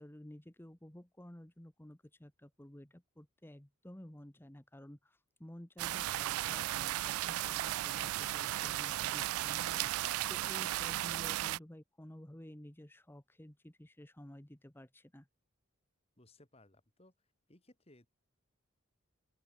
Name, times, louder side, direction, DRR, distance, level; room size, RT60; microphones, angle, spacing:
voice 1, 0.0-15.3, equal, 10° left, 1.0 m, -53 dB
sound 1, 5.8-11.6, right 14 dB, 90° right, 0.3 m, -35 dB
voice 2, 16.2-17.1 17.5-18.1, left 1 dB, 30° left, 2.8 m, -63 dB
open air
head